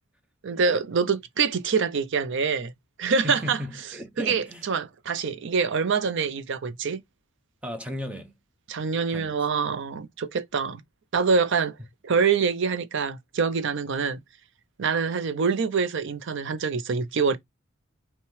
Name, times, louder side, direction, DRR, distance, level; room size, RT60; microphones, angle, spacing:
voice 1, 0.4-2.7 3.0-3.6 4.2-7.0 8.7-10.8 11.1-11.8 12.0-14.2 14.8-17.4, right 5 dB, 65° right, 0.6 m, -25 dB
voice 2, 3.2-4.7 7.6-8.3 9.1-9.3, left 1 dB, 5° right, 0.8 m, -35 dB
5.7 x 2.2 x 3.2 m
head